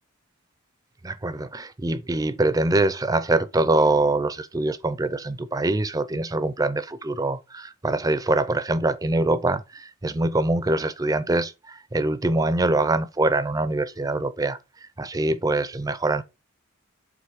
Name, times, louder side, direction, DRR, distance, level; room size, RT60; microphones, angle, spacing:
voice 1, 1.0-16.2, right 2 dB, 15° right, 0.4 m, -24 dB
7.7 x 3.1 x 4.7 m
head